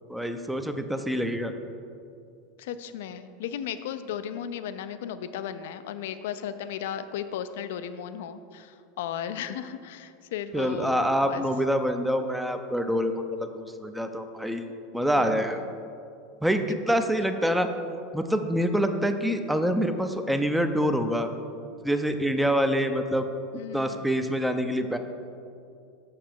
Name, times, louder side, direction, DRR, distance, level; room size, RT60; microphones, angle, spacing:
voice 1, 0.1-1.5 10.5-15.6 16.4-17.7 18.1-21.3 21.8-23.3 23.7-25.0, equal, 5° right, 7 dB, 0.5 m, -26 dB
voice 2, 2.6-11.0 11.3-11.4 15.1-15.6 16.9-17.1 23.5-24.1, left 9 dB, 60° left, 11 dB, 0.4 m, -35 dB
7.2 x 6.6 x 4.6 m, 2.5 s
figure-of-eight pair, 80°, 0 cm